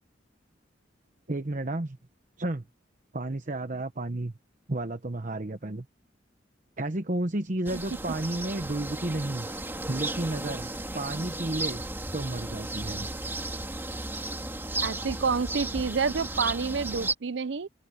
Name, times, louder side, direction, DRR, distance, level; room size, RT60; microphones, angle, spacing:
voice 1, 1.3-2.0 2.4-2.6 3.1-4.3 4.7-5.9 6.8-9.5 9.9-11.8 12.1-13.1, right 2 dB, 45° right, 1.0 m, -32 dB
sound 1, 7.7-17.1, right 2 dB, 10° right, 2.5 m, -34 dB
voice 2, 14.8-17.7, right 5 dB, 70° right, 0.6 m, -28 dB
open air
head